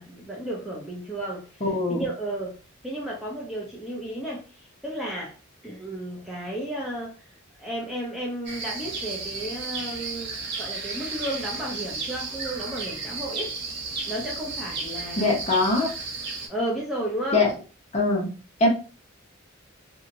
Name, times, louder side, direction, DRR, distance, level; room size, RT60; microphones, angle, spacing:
voice 1, 0.0-2.6 2.8-5.4 5.6-7.2 7.6-13.5 14.1-15.4 15.7-15.8 16.5-17.5, right 1 dB, ahead, 0.6 m, -33 dB
voice 2, 1.6-2.0 15.2-15.9 17.3-17.5 17.9-18.3 18.6-18.7, left 2 dB, 30° left, 1.0 m, -22 dB
sound 1, 8.5-16.5, right 3 dB, 55° right, 0.7 m, -33 dB
2.8 x 2.7 x 2.6 m
head